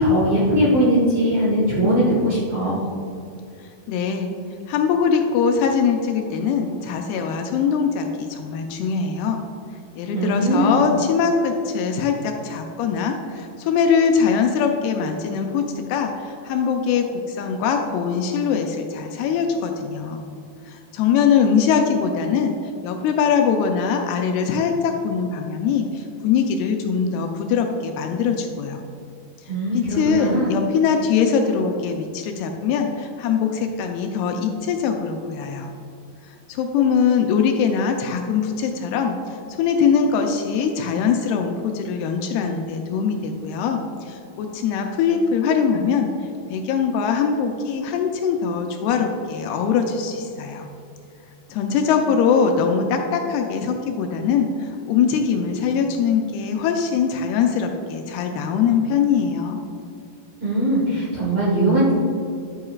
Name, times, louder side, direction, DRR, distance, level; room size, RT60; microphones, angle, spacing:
voice 1, 0.0-2.8 10.1-10.8 29.5-30.5 60.4-61.9, equal, 60° right, -6 dB, 1.7 m, -20 dB
voice 2, 3.9-4.3 4.7-9.4 10.0-20.2 20.7-22.6 22.8-28.8 29.7-35.7 36.5-39.2 39.6-46.1 46.5-50.7 51.5-59.6, left 6 dB, 80° left, 4 dB, 2.4 m, -22 dB
10.5 x 8.6 x 2.4 m, 2.5 s
omnidirectional pair, 4.8 m